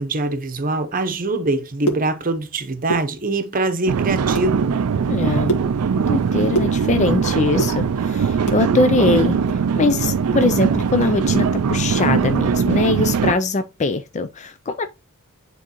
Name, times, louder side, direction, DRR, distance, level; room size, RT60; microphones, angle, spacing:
voice 1, 0.0-4.7, right 2 dB, 40° right, 0.8 m, -23 dB
sound 1, 1.6-2.5 2.8-3.6 4.0-4.5 4.9-7.2 7.5-8.7 9.0-10.6 10.8-10.9 11.3-11.5 11.9-12.1, right 2 dB, 85° left, 1.7 m, -28 dB
sound 2, 3.9-13.3, right 6 dB, 70° right, 0.4 m, -20 dB
voice 2, 5.1-5.5 6.0-9.4 9.8-14.9, left 3 dB, 30° left, 0.4 m, -21 dB
9.7 x 3.7 x 3.0 m
head